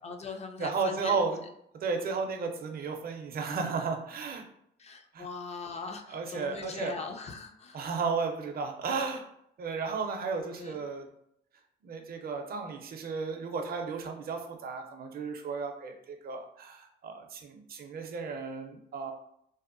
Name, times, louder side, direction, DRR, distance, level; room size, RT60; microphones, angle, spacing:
voice 1, 0.0-1.2 4.8-7.9 10.5-10.8, left 4 dB, 35° left, 4 dB, 0.4 m, -41 dB
voice 2, 0.6-1.4 1.7-4.4 5.1-5.3 6.1-6.9 7.7-9.2 9.6-11.1 11.8-19.1, right 4 dB, 50° right, 4 dB, 0.5 m, -34 dB
2.7 x 2.1 x 2.5 m, 0.73 s
cardioid pair, 90°, 20 cm